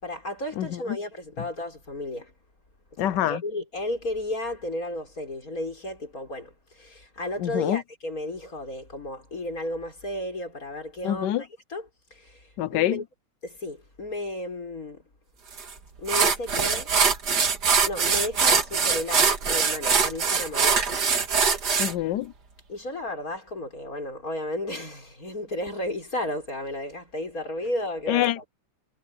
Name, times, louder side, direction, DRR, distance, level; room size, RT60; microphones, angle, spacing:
voice 1, 0.0-2.3 2.9-13.0 13.4-15.0 16.0-16.9 17.9-21.0 22.7-28.4, left 1 dB, 45° left, 5.8 m, -33 dB
voice 2, 0.6-1.0 3.0-3.4 7.4-7.8 11.0-11.4 12.6-13.0 21.8-22.3 28.1-28.5, left 13 dB, 70° left, 1.2 m, -26 dB
sound 1, 15.6-15.7 16.1-21.9, right 5 dB, 55° right, 2.5 m, -22 dB
omnidirectional pair, 2.1 m